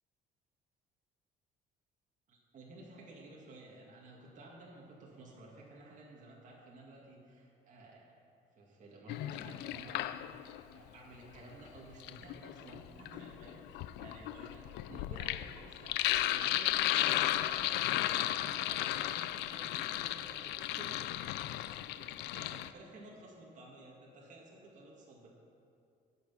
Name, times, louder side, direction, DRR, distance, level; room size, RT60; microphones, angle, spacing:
voice 1, 2.3-8.0 8.5-21.0 21.9-25.3, right 2 dB, 45° right, -3 dB, 2.0 m, -53 dB
Sink (filling or washing), 9.1-10.6 11.8-22.7, left 14 dB, 90° left, 0.4 m, -35 dB
16.0 x 6.0 x 5.7 m, 2.4 s
cardioid pair, 110°, 17 cm